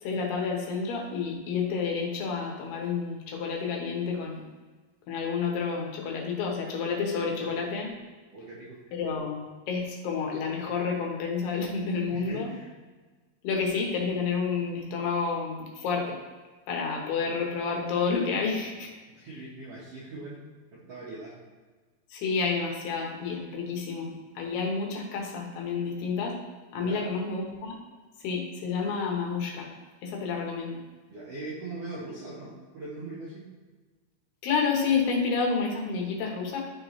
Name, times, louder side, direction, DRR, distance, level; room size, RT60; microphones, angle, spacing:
voice 1, 0.0-4.5 5.1-7.9 8.9-12.5 13.4-16.2 16.7-18.9 22.1-26.3 26.7-27.8 28.2-29.7 30.0-30.8 34.4-36.6, left 5 dB, 85° left, 0 dB, 3.2 m, -30 dB
voice 2, 8.3-8.8 12.1-12.7 19.2-20.4 20.7-21.4 26.7-27.1 31.1-33.5, right 2 dB, 65° right, -6 dB, 1.5 m, -40 dB
11.5 x 3.9 x 3.1 m, 1.3 s
omnidirectional pair, 4.5 m